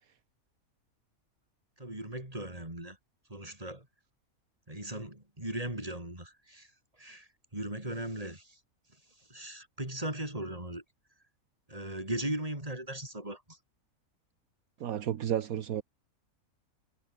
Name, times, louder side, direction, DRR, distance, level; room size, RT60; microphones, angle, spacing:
voice 1, 1.8-3.0 3.3-3.9 4.7-6.7 7.0-8.6 9.3-10.8 11.7-13.6, right 1 dB, 25° right, 5.2 m, -38 dB
voice 2, 14.8-15.8, right 10 dB, 70° right, 1.3 m, -32 dB
omnidirectional pair, 1.5 m